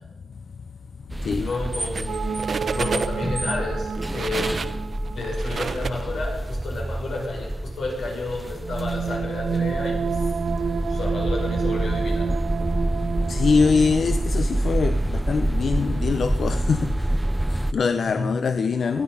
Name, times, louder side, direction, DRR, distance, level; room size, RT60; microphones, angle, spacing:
voice 1, 0.3-0.7 1.1-1.5 13.2-19.0, left 5 dB, 55° left, 0.6 m, -24 dB
sound 1, 1.1-17.7, right 1 dB, 10° right, 0.4 m, -27 dB
voice 2, 1.4-4.7 5.1-10.3 10.9-12.3 18.0-18.3, left 2 dB, 80° left, 5.9 m, -31 dB
sound 2, 1.7-2.1 2.4-3.3 3.9-6.5, right 5 dB, 50° right, 0.8 m, -31 dB
sound 3, 2.1-6.4 8.6-14.9 15.3-15.4, right 6 dB, 80° right, 1.1 m, -30 dB
20.0 x 12.5 x 5.5 m
wide cardioid pair, 140°, 0 cm